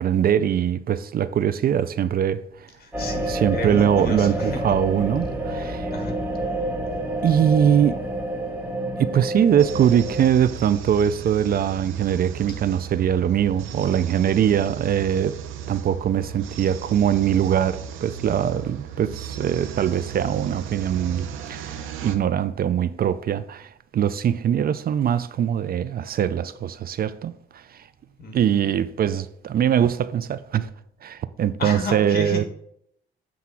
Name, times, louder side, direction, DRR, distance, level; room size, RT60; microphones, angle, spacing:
voice 1, 0.0-2.7 3.3-5.9 7.2-8.0 9.0-15.4 15.7-27.8 28.3-30.7 31.0-32.4, right 9 dB, 50° right, 0.4 m, -22 dB
voice 2, 2.8-4.8 5.9-6.2 28.2-28.7 31.6-32.4, left 2 dB, 50° left, 1.8 m, -32 dB
sound 1, 2.9-10.3, right 1 dB, 5° right, 2.6 m, -28 dB
sound 2, 9.6-22.2, right 8 dB, 90° right, 0.8 m, -36 dB
7.7 x 3.5 x 5.7 m
cardioid pair, 90°, 20 cm